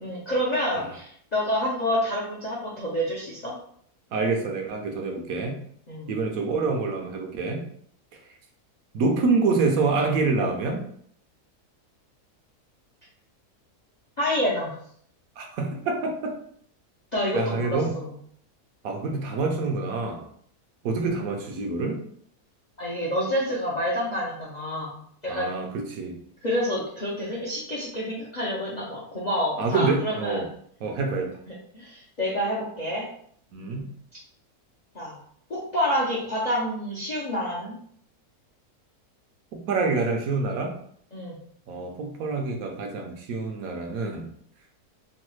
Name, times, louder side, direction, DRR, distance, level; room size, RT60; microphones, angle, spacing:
voice 1, 0.0-3.5 5.9-6.1 14.2-14.7 17.1-18.1 22.8-25.5 26.4-30.5 31.7-33.1 34.9-35.2 35.5-37.7 41.1-41.4, equal, 50° left, -6 dB, 0.5 m, -28 dB
voice 2, 4.1-5.6 6.1-7.6 8.9-10.8 15.4-16.4 17.3-17.9 18.8-20.2 20.8-22.0 25.3-26.2 29.6-30.4 30.8-31.3 33.5-33.9 39.5-40.7 41.7-44.3, right 3 dB, 70° right, 2 dB, 1.0 m, -26 dB
3.1 x 2.2 x 3.0 m, 0.63 s
omnidirectional pair, 1.6 m